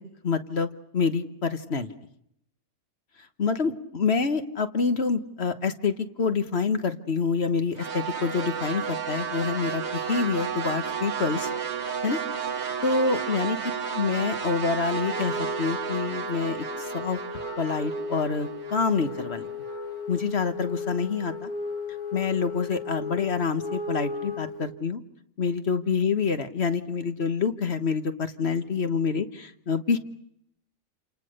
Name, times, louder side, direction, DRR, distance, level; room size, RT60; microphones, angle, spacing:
voice 1, 0.2-0.7 0.9-1.9 3.4-11.5 12.0-12.2 12.8-13.6 13.9-16.7 16.9-17.2 17.6-19.5 20.1-21.5 22.1-25.0 25.4-30.0, left 5 dB, 45° left, 10 dB, 1.4 m, -27 dB
sound 1, 7.8-20.0, right 6 dB, 50° right, 1.5 m, -32 dB
Wind instrument woodwind instrument, 14.9-24.7, left 4 dB, 80° left, 3.6 m, -36 dB
28.5 x 28.0 x 6.6 m, 0.75 s
omnidirectional pair, 1.6 m